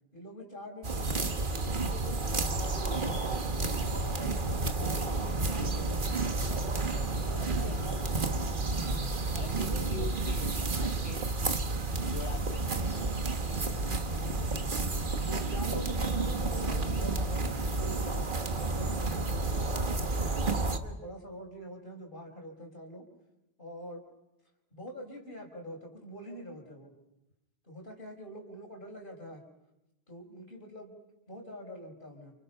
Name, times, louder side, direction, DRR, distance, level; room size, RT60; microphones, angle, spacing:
voice 1, 0.1-1.3 1.8-3.3 3.6-6.1 7.3-8.4 8.8-9.1 9.5-10.1 14.1-14.8 15.2-23.1 23.6-24.0 24.7-26.9 27.6-29.4 30.1-30.9 31.3-32.3, equal, 55° left, 1 dB, 5.3 m, -45 dB
sound 1, 0.8-20.8, right 3 dB, 50° right, 1.6 m, -31 dB
voice 2, 7.4-7.8 9.3-11.2 12.1-12.9, left 6 dB, 75° left, 6 dB, 1.4 m, -44 dB
29.0 x 28.5 x 5.7 m, 0.93 s
omnidirectional pair, 1.1 m